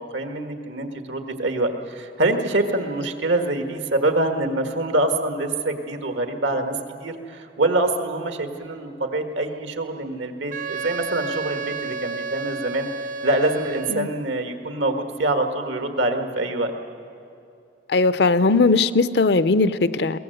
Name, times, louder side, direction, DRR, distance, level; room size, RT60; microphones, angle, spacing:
voice 1, 0.0-6.7 7.0-12.9 13.2-16.7, right 2 dB, 80° right, 6 dB, 1.7 m, -25 dB
Wind instrument woodwind instrument, 10.5-14.2, right 4 dB, 40° right, 0.5 m, -31 dB
voice 2, 17.9-20.2, left 3 dB, 60° left, 14 dB, 0.6 m, -19 dB
22.0 x 18.0 x 7.9 m, 2.6 s
head